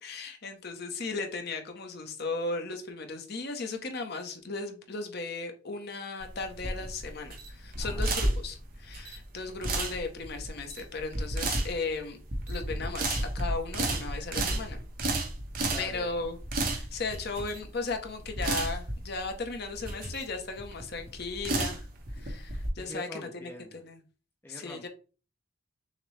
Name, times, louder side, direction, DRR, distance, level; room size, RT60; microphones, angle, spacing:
voice 1, 0.0-12.2 12.5-14.8 15.8-21.9 22.1-23.5 23.8-24.0 24.5-24.9, left 3 dB, 50° left, 5 dB, 0.8 m, -36 dB
sound 1, 6.2-22.7, right 2 dB, 45° right, 0.9 m, -32 dB
voice 2, 7.8-8.3 15.7-16.1 22.8-23.8 24.4-24.9, left 1 dB, 10° left, 2 dB, 0.4 m, -45 dB
6.5 x 2.2 x 3.2 m, 0.36 s
head